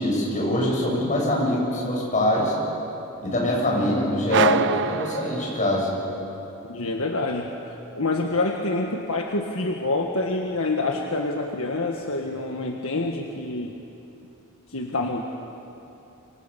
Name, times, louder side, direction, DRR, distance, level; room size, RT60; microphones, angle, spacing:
voice 1, 0.0-2.6 3.2-6.0, left 1 dB, 35° left, -3 dB, 7.5 m, -23 dB
sound 1, 4.3-6.1, right 6 dB, 55° right, 0.6 m, -25 dB
voice 2, 6.7-7.6 7.9-13.8 14.7-15.2, left 2 dB, 70° left, 1 dB, 1.6 m, -27 dB
28.5 x 24.5 x 7.0 m, 2.9 s
head